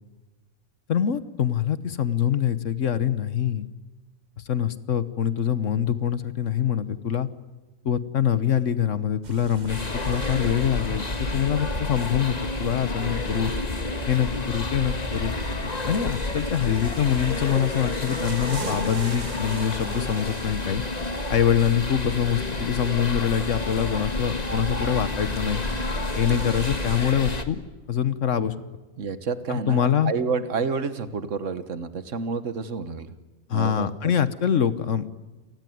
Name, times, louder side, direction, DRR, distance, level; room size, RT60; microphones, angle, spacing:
voice 1, 0.9-3.7 4.4-7.3 7.8-13.5 14.1-15.3 15.8-20.8 21.3-25.6 26.2-27.6 27.9-28.5 29.5-30.1 33.5-35.1, left 9 dB, 75° left, 14 dB, 1.4 m, -24 dB
sound 1, 9.2-27.1, right 5 dB, 40° right, 1.0 m, -42 dB
sound 2, 9.7-27.4, left 2 dB, 30° left, 1.7 m, -30 dB
voice 2, 29.0-33.1 33.5-33.9, right 5 dB, 75° right, 12 dB, 1.7 m, -29 dB
29.0 x 19.0 x 9.4 m, 1.2 s
omnidirectional pair, 1.3 m